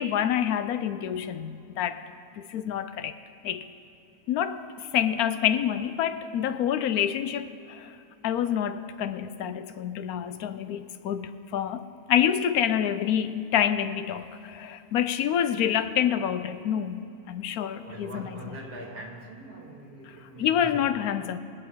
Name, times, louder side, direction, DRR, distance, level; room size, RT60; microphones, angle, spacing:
voice 1, 0.0-2.0 2.3-3.1 3.4-3.7 4.3-8.0 8.2-18.6 20.4-21.4, left 9 dB, 75° left, 11 dB, 1.0 m, -27 dB
voice 2, 17.8-21.0, right 1 dB, 70° right, 0 dB, 2.3 m, -42 dB
21.5 x 7.9 x 4.7 m, 2.7 s
omnidirectional pair, 1.6 m